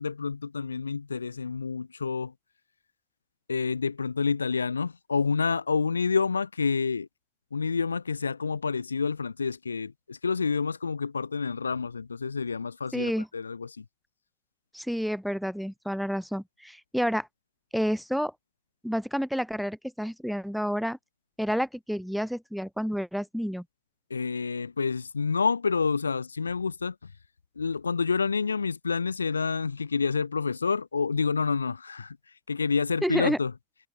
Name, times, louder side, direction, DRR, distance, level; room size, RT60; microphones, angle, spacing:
voice 1, 0.0-2.3 3.5-7.1 7.5-13.8 24.1-27.0 27.6-32.2 32.5-33.5, left 5 dB, 80° left, 0.4 m, -28 dB
voice 2, 12.9-13.3 14.7-17.3 17.7-18.3 18.8-21.0 21.4-23.6 33.0-33.4, equal, ahead, 1.1 m, -29 dB
figure-of-eight pair, 80°, 0 cm